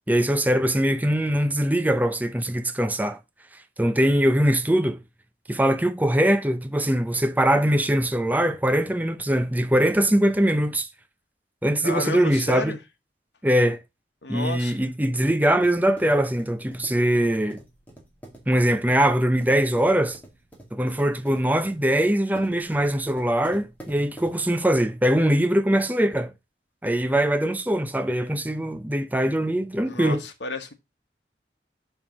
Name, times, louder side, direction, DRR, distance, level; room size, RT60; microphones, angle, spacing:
voice 1, 0.1-3.2 3.8-5.0 5.5-10.9 11.6-12.7 13.4-13.8 14.3-17.6 18.5-20.2 20.7-26.3 26.8-30.2, right 1 dB, 10° right, 0.7 m, -22 dB
voice 2, 11.8-12.8 14.2-14.8 29.9-30.7, left 2 dB, 80° left, 1.2 m, -31 dB
sound 1, 15.5-24.9, right 1 dB, 10° left, 2.1 m, -46 dB
5.5 x 4.9 x 5.8 m
head